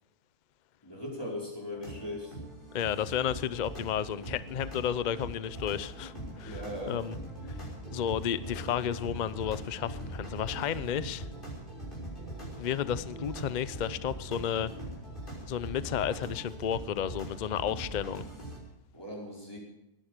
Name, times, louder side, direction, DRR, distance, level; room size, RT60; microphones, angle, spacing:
voice 1, 0.8-2.4 6.5-7.0 18.9-19.6, left 1 dB, 15° left, 5.0 m, -39 dB
sound 1, 1.7-18.6, right 1 dB, 30° left, 6.2 m, -41 dB
voice 2, 2.7-6.6 6.9-7.1 7.6-11.3 12.6-14.7 15.5-18.2, left 9 dB, 65° left, 0.4 m, -32 dB
19.0 x 10.5 x 6.7 m
omnidirectional pair, 1.7 m